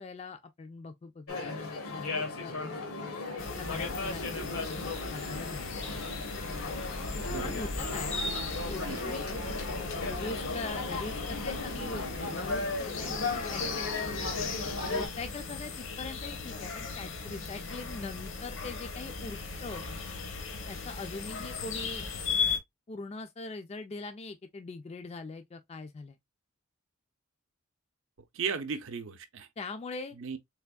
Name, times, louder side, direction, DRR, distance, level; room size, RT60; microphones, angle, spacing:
voice 1, 0.0-2.1 2.4-2.8 3.6-5.6 7.4-8.1 8.7-9.2 9.9-13.8 14.9-19.8 20.7-22.0 22.9-26.2 29.6-30.2, left 3 dB, 30° left, 0.3 m, -42 dB
sound 1, 1.3-15.1, left 3 dB, 80° left, 1.0 m, -36 dB
sound 2, 3.4-22.6, left 4 dB, 60° left, 0.7 m, -37 dB
voice 2, 28.3-29.5 30.1-30.4, right 5 dB, 65° right, 0.6 m, -35 dB
3.4 x 3.4 x 2.2 m
head